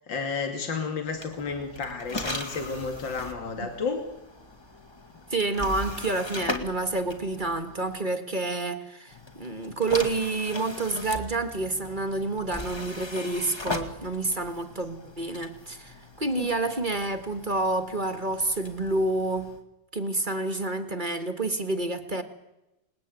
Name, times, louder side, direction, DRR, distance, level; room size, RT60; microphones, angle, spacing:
voice 1, 0.1-4.0 16.4-16.5, left 5 dB, 70° left, 5 dB, 3.1 m, -31 dB
sound 1, 1.1-8.0 9.1-19.6, left 2 dB, 15° left, 2.0 m, -39 dB
voice 2, 5.3-19.5 19.9-22.2, right 2 dB, 25° right, 9 dB, 1.8 m, -29 dB
28.0 x 20.5 x 9.2 m, 0.95 s
omnidirectional pair, 2.1 m